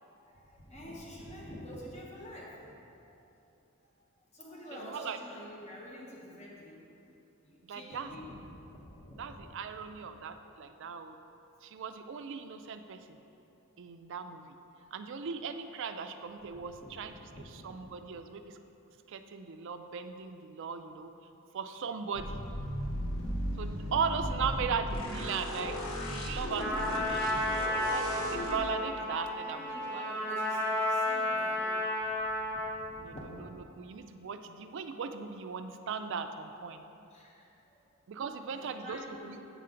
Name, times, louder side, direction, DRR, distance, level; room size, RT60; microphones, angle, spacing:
voice 1, 0.0-3.0 3.8-3.9 4.3-6.8 7.4-9.8 14.8-14.9 16.8-16.9 17.3-17.9 23.8-24.0 29.5-31.7 32.4-33.4 37.1-37.8 38.5-39.4, equal, 30° left, -4 dB, 1.0 m, -48 dB
voice 2, 4.7-5.2 7.6-8.1 9.2-11.1 11.6-13.2 13.8-14.4 14.9-17.1 17.6-18.6 19.1-21.1 21.5-22.4 23.6-25.7 26.0-30.1 33.0-33.5 33.7-36.8 38.1-39.4, right 6 dB, 60° right, 8 dB, 0.4 m, -38 dB
sound 1, 22.1-28.6, equal, 70° left, 1.0 m, -36 dB
Trumpet, 26.6-32.8, left 1 dB, 5° left, 1.0 m, -32 dB
8.1 x 5.6 x 3.8 m, 2.9 s
head